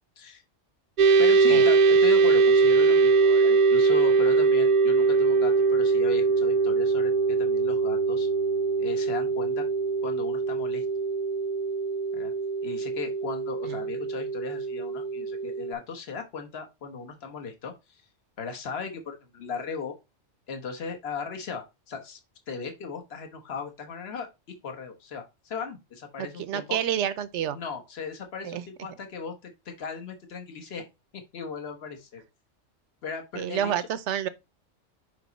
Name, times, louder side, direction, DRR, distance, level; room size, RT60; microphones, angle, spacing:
sound 1, 1.0-15.7, right 4 dB, 50° right, 0.6 m, -22 dB
voice 1, 1.2-8.3 8.8-9.6 10.0-10.8 12.1-12.3 12.6-18.0 18.4-19.9 20.5-22.2 22.5-24.3 24.6-26.8 27.5-30.9 31.3-32.2 33.0-33.9, left 5 dB, 60° left, 1.4 m, -37 dB
voice 2, 26.2-27.6 28.4-28.6 33.3-34.3, right 10 dB, 80° right, 0.9 m, -29 dB
5.2 x 5.2 x 3.9 m
omnidirectional pair, 1.2 m